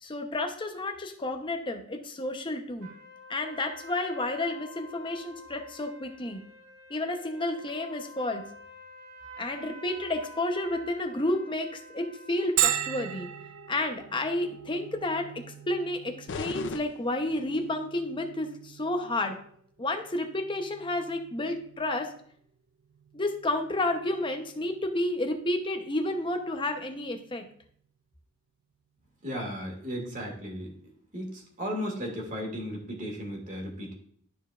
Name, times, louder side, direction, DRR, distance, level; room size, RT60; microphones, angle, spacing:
voice 1, 0.0-2.9 3.3-6.4 6.9-8.5 9.4-13.3 13.7-19.4 19.8-22.1 23.1-27.4, left 1 dB, 25° left, 5 dB, 0.8 m, -31 dB
sound 1, 2.8-12.7, equal, 55° right, 1.8 m, -48 dB
Bell, 12.6-28.0, right 12 dB, 85° right, 0.4 m, -38 dB
sound 2, 16.3-17.8, left 4 dB, 55° left, 0.5 m, -38 dB
voice 2, 29.2-30.7 31.1-33.9, equal, 35° right, 1 dB, 1.9 m, -35 dB
12.0 x 4.5 x 2.4 m, 0.62 s
head